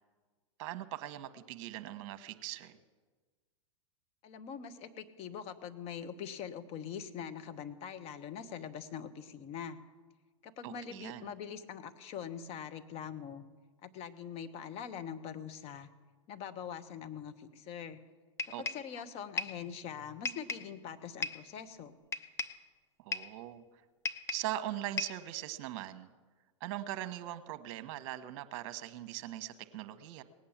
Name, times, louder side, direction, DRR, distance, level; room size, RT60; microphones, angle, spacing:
voice 1, 0.6-2.7 10.6-11.3 18.5-18.6 23.0-23.6 24.3-26.1 26.6-30.2, right 13 dB, 50° right, 11 dB, 1.1 m, -41 dB
voice 2, 4.2-9.8 10.4-13.4 13.8-15.9 16.3-18.0 18.4-21.9, left 8 dB, 40° left, 10 dB, 1.2 m, -43 dB
sound 1, 18.4-18.9 19.4-19.6 20.3-20.7 21.2-21.5 22.1-22.6 23.1-23.4 24.1-24.5 25.0-25.3, left 3 dB, 15° left, 0.7 m, -37 dB
18.5 x 8.7 x 7.3 m, 1.4 s
hypercardioid pair, 115°, 16 cm